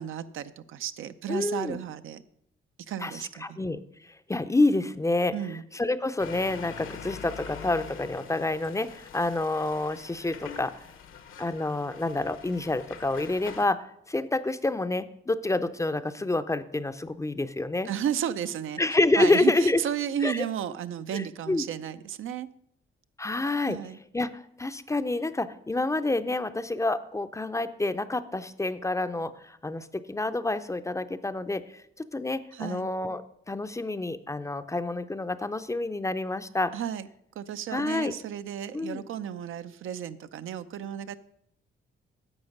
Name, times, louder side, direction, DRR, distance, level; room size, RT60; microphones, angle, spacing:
voice 1, 0.0-2.2 2.9-3.6 5.3-5.6 17.8-18.8 19.2-22.5 23.7-24.0 32.5-32.9 36.7-37.1 37.4-41.2, right 9 dB, 75° right, 12 dB, 0.6 m, -33 dB
voice 2, 1.3-1.8 3.0-3.8 4.3-5.3 5.7-10.7 11.4-17.9 18.8-19.8 20.2-20.5 21.1-21.6 23.2-23.8 24.1-31.6 32.0-33.2 33.5-36.7 37.7-38.1 38.7-39.0, left 2 dB, 15° left, 12 dB, 0.5 m, -28 dB
sound 1, 6.2-13.7, left 7 dB, 80° left, 1.1 m, -44 dB
11.0 x 7.0 x 5.2 m, 0.72 s
cardioid pair, 105°, 21 cm